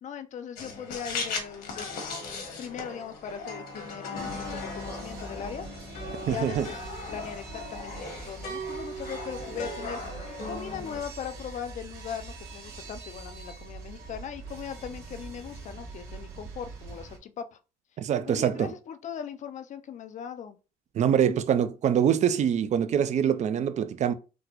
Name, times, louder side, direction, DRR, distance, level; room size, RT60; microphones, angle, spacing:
voice 1, 0.0-2.2 2.6-5.7 6.2-6.8 7.1-10.0 10.5-17.6 18.3-20.6, left 8 dB, 45° left, 0.4 m, -39 dB
sound 1, 0.6-11.0, left 3 dB, 70° left, 1.2 m, -37 dB
sound 2, 4.1-17.2, right 4 dB, 65° right, 1.3 m, -43 dB
voice 2, 6.3-6.7 18.0-18.7 20.9-24.1, right 9 dB, 45° right, 0.4 m, -24 dB
4.1 x 2.1 x 2.9 m
cardioid pair, 110°, 17 cm